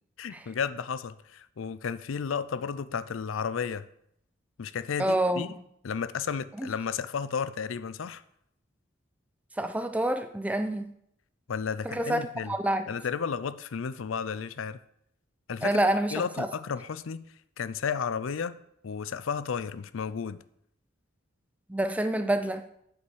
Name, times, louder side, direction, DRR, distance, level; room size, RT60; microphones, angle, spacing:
voice 1, 0.2-3.8 4.6-5.5 5.8-8.2 11.5-12.5 12.9-14.8 15.5-15.8 16.1-17.3 17.6-18.6 18.8-20.4, left 6 dB, 90° left, 0.5 m, -33 dB
voice 2, 5.0-5.5 6.6-6.7 9.6-10.9 11.8-12.9 15.6-16.5 21.7-22.7, right 1 dB, 5° right, 0.5 m, -27 dB
8.2 x 5.5 x 6.2 m
head